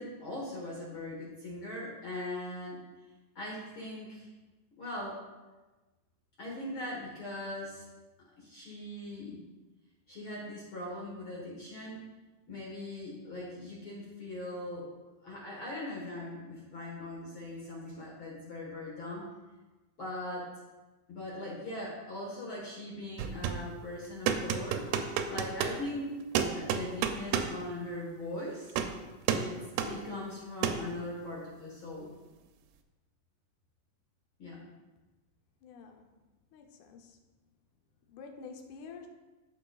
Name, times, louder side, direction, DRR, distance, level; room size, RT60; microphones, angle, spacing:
voice 1, 0.0-2.8 3.3-4.3 4.8-5.2 6.4-7.8 8.4-9.4 10.1-12.1 12.5-14.8 15.2-19.3 20.0-20.5 21.1-24.9 25.3-26.1 26.5-28.8 29.3-32.1 34.4-34.6, left 1 dB, 60° left, -4 dB, 1.3 m, -40 dB
sound 1, 23.2-23.7 24.3-25.8 26.4-27.6 28.7-29.0 29.3-29.5 29.8-29.9 30.6-30.9, right 8 dB, 85° right, 2.4 m, -30 dB
voice 2, 35.6-36.1 36.5-37.2 38.1-39.1, left 5 dB, 80° left, 4 dB, 1.8 m, -48 dB
13.5 x 5.2 x 2.4 m, 1.2 s
omnidirectional pair, 4.4 m